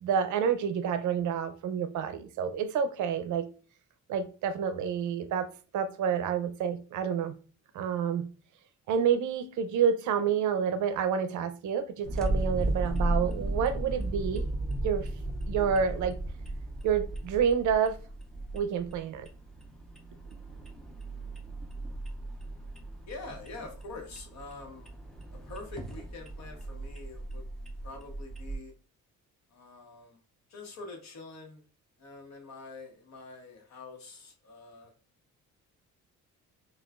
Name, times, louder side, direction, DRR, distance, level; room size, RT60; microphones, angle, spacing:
voice 1, 0.0-3.5 4.1-5.5 5.7-7.4 7.7-8.3 8.9-14.4 14.8-15.1 15.5-16.2 16.8-18.0 18.5-19.3, right 7 dB, 70° right, 10 dB, 0.5 m, -28 dB
sound 1, 12.0-28.6, right 1 dB, ahead, 0.4 m, -35 dB
voice 2, 23.1-25.0 25.3-27.5 27.8-28.7 29.5-30.2 30.5-31.6 32.0-34.9, left 3 dB, 60° left, 3 dB, 1.1 m, -45 dB
5.7 x 2.4 x 2.4 m, 0.37 s
cardioid pair, 165°, 31 cm